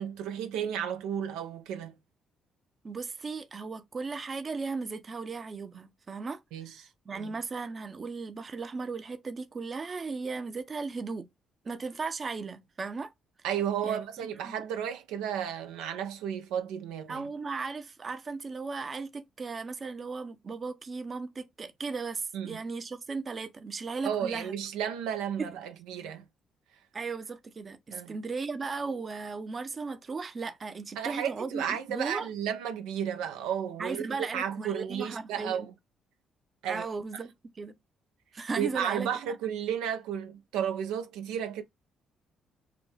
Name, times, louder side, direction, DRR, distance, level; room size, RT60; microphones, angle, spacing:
voice 1, 0.0-2.0 6.5-6.7 7.1-7.3 13.4-17.2 22.3-22.6 24.0-26.2 27.9-28.1 31.0-35.7 36.6-36.9 38.6-41.6, right 9 dB, 90° right, 0.6 m, -33 dB
voice 2, 2.8-11.3 11.6-13.1 13.8-14.6 17.1-24.6 26.9-32.3 33.8-35.7 36.7-37.7 38.3-39.1, right 4 dB, 40° right, 0.7 m, -36 dB
4.9 x 2.3 x 3.3 m
supercardioid pair, 70°, 0 cm